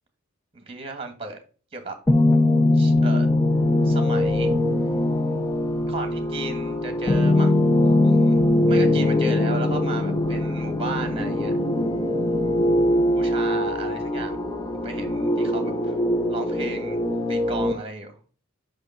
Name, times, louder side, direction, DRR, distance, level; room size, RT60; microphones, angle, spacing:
voice 1, 0.5-1.4 1.7-2.0 2.7-3.3 3.8-4.5 5.9-7.5 8.0-8.4 8.7-11.5 13.1-14.4 14.7-15.9 16.3-18.1, right 3 dB, 25° right, 6 dB, 1.4 m, -35 dB
sound 1, 2.1-17.7, left 1 dB, 15° left, 0.7 m, -21 dB
5.6 x 5.0 x 5.6 m, 0.39 s
head